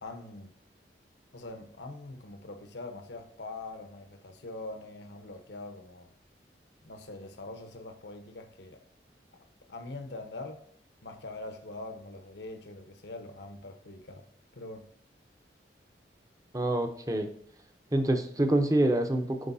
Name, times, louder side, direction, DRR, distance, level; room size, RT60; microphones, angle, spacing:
voice 1, 0.0-0.5 1.3-6.1 6.8-8.8 9.7-10.6 11.0-14.2 14.5-14.9, left 2 dB, 80° left, 6 dB, 1.1 m, -43 dB
voice 2, 16.5-17.3 17.9-19.5, right 1 dB, 20° right, 6 dB, 0.8 m, -26 dB
10.0 x 4.5 x 2.7 m, 0.67 s
head